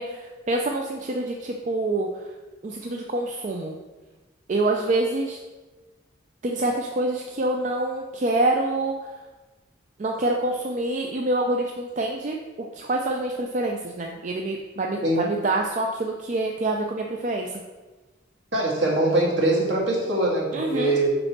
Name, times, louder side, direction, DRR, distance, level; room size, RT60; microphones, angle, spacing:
voice 1, 0.0-2.3 2.6-3.8 4.5-5.4 6.4-9.1 10.0-17.6 20.5-20.9, right 2 dB, 40° right, 1 dB, 0.4 m, -26 dB
voice 2, 18.5-21.2, right 1 dB, 65° right, -3 dB, 1.9 m, -22 dB
5.1 x 4.4 x 5.9 m, 1.2 s
head